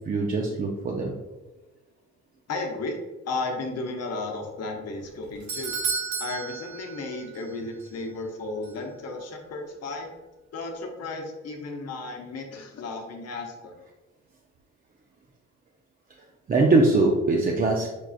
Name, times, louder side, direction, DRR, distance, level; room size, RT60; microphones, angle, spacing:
voice 1, 0.1-1.1 16.5-17.9, right 2 dB, 30° right, 0 dB, 0.5 m, -22 dB
voice 2, 2.5-3.0 3.2-5.8 6.2-10.1 10.5-13.7, left 3 dB, 55° left, 2 dB, 0.8 m, -34 dB
Doorbell, 5.0-7.5 7.8-7.9 8.6-8.7, right 5 dB, 70° right, 0.8 m, -32 dB
6.0 x 2.4 x 2.4 m, 1.1 s
cardioid pair, 90°, 30 cm